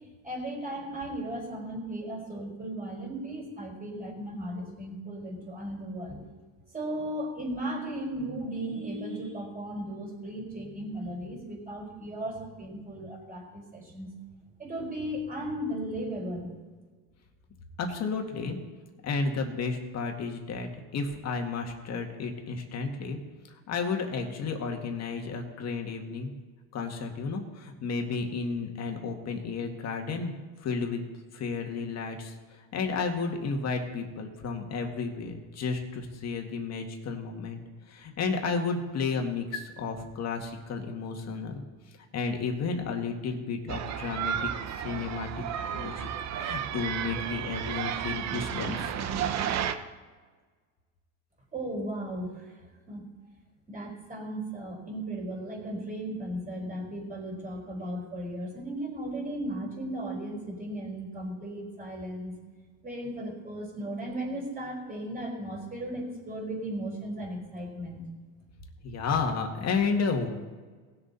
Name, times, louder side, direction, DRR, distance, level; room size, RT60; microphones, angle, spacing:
voice 1, 0.2-6.2 6.7-14.1 14.6-16.5 51.5-52.5 52.9-53.0 53.7-62.3 62.8-68.0, right 1 dB, 20° right, -2 dB, 4.3 m, -36 dB
voice 2, 17.8-18.6 19.0-23.2 23.7-26.3 26.7-30.3 30.6-31.0 31.3-32.3 32.7-37.6 37.9-41.6 42.1-44.5 44.8-45.4 45.7-46.1 46.3-48.9 68.8-70.3, left 4 dB, 40° left, 3 dB, 1.9 m, -32 dB
sound 1, 43.7-49.7, right 9 dB, 40° right, 0.8 m, -32 dB
18.5 x 6.9 x 4.1 m, 1.4 s
supercardioid pair, 120°, 40 cm